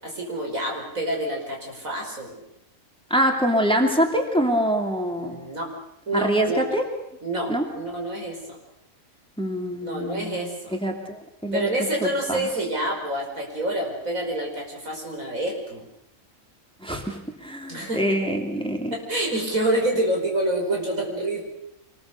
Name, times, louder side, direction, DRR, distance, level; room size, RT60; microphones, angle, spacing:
voice 1, 0.0-2.4 5.2-5.7 6.1-6.7 7.2-8.6 9.8-10.8 11.5-15.8 17.7-18.0 18.9-21.4, right 1 dB, 80° right, 0 dB, 5.8 m, -27 dB
voice 2, 3.1-5.4 6.1-6.9 7.5-7.6 9.4-10.5 10.7-11.7 12.0-12.5 16.8-18.9, equal, 5° left, 2 dB, 2.7 m, -25 dB
26.0 x 20.5 x 6.8 m, 0.81 s
omnidirectional pair, 1.4 m